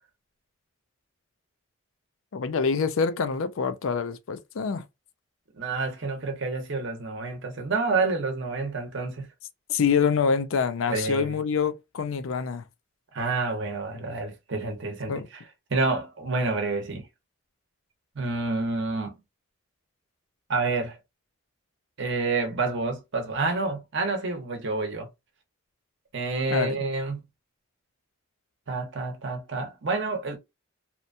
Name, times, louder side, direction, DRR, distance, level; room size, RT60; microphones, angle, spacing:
voice 1, 2.3-4.8 9.7-12.6 15.1-15.3 26.5-26.8, left 6 dB, 70° left, 0.4 m, -26 dB
voice 2, 5.5-9.3 10.9-11.4 13.1-15.4 15.7-17.1 18.1-19.1 20.5-21.0 22.0-25.1 26.1-27.3 28.7-30.4, right 3 dB, 55° right, 0.8 m, -28 dB
2.8 x 2.2 x 2.5 m
head